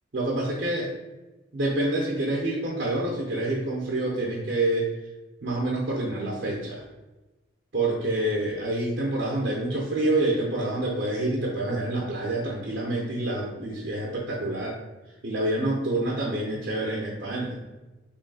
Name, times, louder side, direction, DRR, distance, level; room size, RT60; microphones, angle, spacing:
voice 1, 0.1-0.9 1.5-4.9 5.4-6.8 7.7-14.8 15.2-17.6, right 1 dB, 55° right, -4 dB, 0.7 m, -27 dB
3.2 x 2.7 x 4.0 m, 1.1 s
head